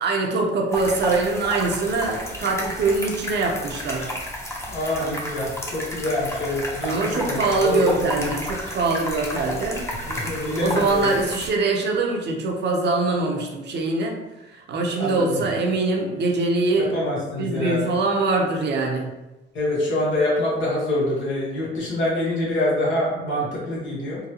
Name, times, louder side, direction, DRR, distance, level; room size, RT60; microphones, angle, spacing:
voice 1, 0.0-4.1 6.9-9.9 10.6-14.2 14.5-16.9 17.4-19.1, right 3 dB, 60° right, 0 dB, 0.7 m, -23 dB
sound 1, 0.7-11.5, left 1 dB, 15° left, 0.8 m, -32 dB
voice 2, 4.7-8.3 10.0-11.1 15.0-15.4 16.8-17.9 19.5-24.2, left 1 dB, 75° left, -5 dB, 1.4 m, -25 dB
3.8 x 2.2 x 2.8 m, 1.0 s
cardioid pair, 90°, 20 cm